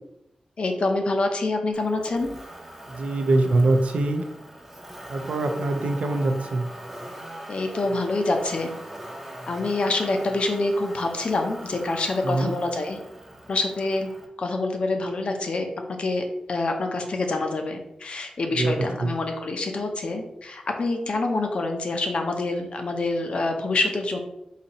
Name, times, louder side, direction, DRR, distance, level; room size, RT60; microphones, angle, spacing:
voice 1, 0.6-2.3 7.5-8.7 9.5-13.0 13.5-14.1 14.4-24.2, left 2 dB, 55° left, 4 dB, 0.6 m, -26 dB
Motor vehicle (road), 1.7-14.3, right 1 dB, 10° right, 0.7 m, -41 dB
voice 2, 2.9-4.2 5.1-6.7 12.2-12.5 18.5-18.7 19.0-19.1, right 2 dB, 70° right, 6 dB, 0.5 m, -23 dB
4.1 x 2.7 x 4.1 m, 0.85 s
wide cardioid pair, 145°, 2 cm